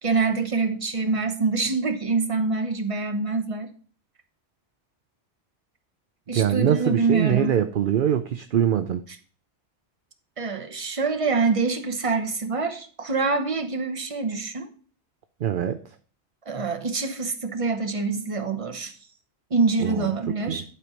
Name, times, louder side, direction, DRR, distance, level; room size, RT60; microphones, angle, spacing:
voice 1, 0.0-3.7 6.3-7.5 10.4-14.7 16.5-18.9 19.5-20.6, right 4 dB, 30° right, 1.0 m, -25 dB
voice 2, 6.3-9.0 15.4-15.8 19.8-20.6, right 9 dB, 55° right, 0.7 m, -23 dB
11.5 x 4.5 x 5.1 m
omnidirectional pair, 1.2 m